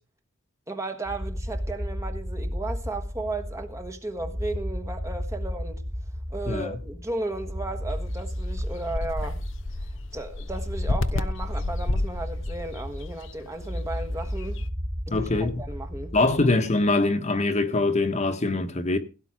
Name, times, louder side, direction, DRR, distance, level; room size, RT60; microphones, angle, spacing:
voice 1, 0.7-5.8 6.3-9.4 9.8-14.7 15.1-16.3, right 2 dB, 15° right, 1.3 m, -35 dB
sound 1, 1.0-16.6, equal, 40° right, 2.8 m, -33 dB
voice 2, 6.5-6.8 15.1-15.6 16.1-19.0, left 2 dB, 35° left, 1.3 m, -23 dB
sound 2, 7.9-14.7, left 2 dB, 60° left, 0.7 m, -32 dB
17.0 x 8.2 x 4.8 m
head